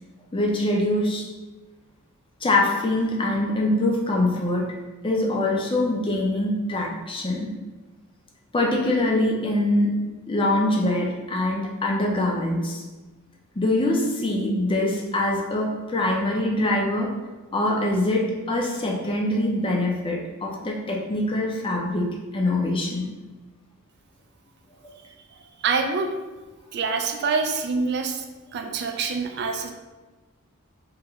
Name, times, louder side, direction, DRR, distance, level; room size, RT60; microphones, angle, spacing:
voice 1, 0.3-1.2 2.4-4.7 5.0-7.5 8.5-12.8 13.6-17.1 17.5-23.0, left 1 dB, 25° left, -1 dB, 0.5 m, -24 dB
voice 2, 25.6-26.1 26.7-28.2 28.5-29.7, right 4 dB, 50° right, 5 dB, 0.4 m, -25 dB
3.1 x 2.9 x 3.5 m, 1.2 s
head